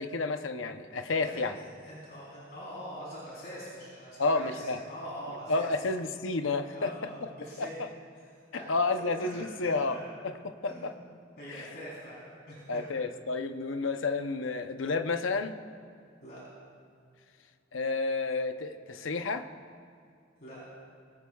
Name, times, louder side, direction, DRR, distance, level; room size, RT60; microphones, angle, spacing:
voice 1, 0.0-1.5 4.2-4.8 5.5-6.9 7.2-7.3 7.6-7.7 8.7-10.0 10.4-10.9 11.5-11.7 12.7-15.6 17.7-19.5, left 3 dB, 80° left, 8 dB, 0.7 m, -30 dB
voice 2, 1.1-1.4 1.8-5.7 6.7-7.8 8.1-8.3 8.5-8.7 9.0-10.0 10.7-10.9 11.4-12.9 16.2-16.4 20.4-20.6, equal, 55° left, -7 dB, 3.7 m, -44 dB
22.5 x 18.0 x 2.3 m, 2.4 s
head